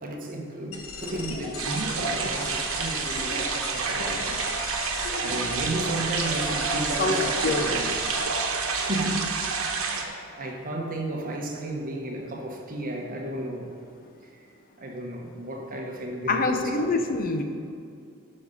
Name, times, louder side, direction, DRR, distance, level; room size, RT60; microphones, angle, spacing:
voice 1, 0.0-4.4 5.2-7.9 8.7-9.4 9.7-13.7 14.8-16.9, right 1 dB, 40° right, 1 dB, 1.2 m, -33 dB
sound 1, 0.7-8.2, left 2 dB, 80° left, 1.4 m, -37 dB
sound 2, 1.6-10.0, right 4 dB, 85° right, 1.1 m, -28 dB
voice 2, 7.0-7.7 16.3-17.4, left 3 dB, 45° left, 5 dB, 0.7 m, -25 dB
11.0 x 5.4 x 5.5 m, 2.4 s
head